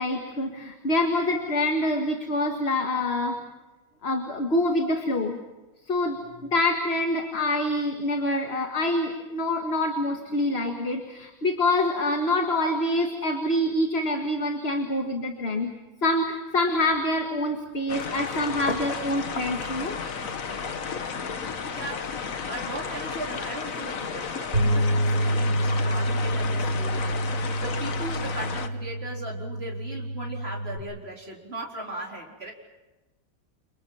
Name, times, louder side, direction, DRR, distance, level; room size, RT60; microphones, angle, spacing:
voice 1, 0.0-3.4 4.0-5.4 5.9-15.7 16.0-20.0, left 1 dB, 45° left, 4 dB, 2.1 m, -26 dB
sound 1, 17.9-28.7, left 5 dB, 65° left, 1.6 m, -33 dB
voice 2, 21.6-32.5, right 2 dB, 40° right, -1 dB, 4.4 m, -38 dB
sound 2, 24.5-30.8, equal, 75° right, 5.9 m, -27 dB
29.5 x 28.0 x 5.7 m, 1.1 s
omnidirectional pair, 1.6 m